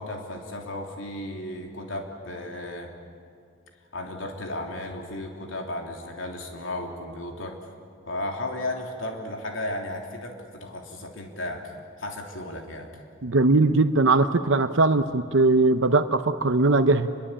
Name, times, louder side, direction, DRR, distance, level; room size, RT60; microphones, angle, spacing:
voice 1, 0.0-2.9 3.9-7.6 8.1-11.7 12.0-12.9, left 1 dB, 75° left, 2 dB, 3.3 m, -34 dB
voice 2, 13.2-17.1, right 3 dB, 70° right, 9 dB, 0.9 m, -20 dB
29.0 x 23.0 x 8.8 m, 2.4 s
head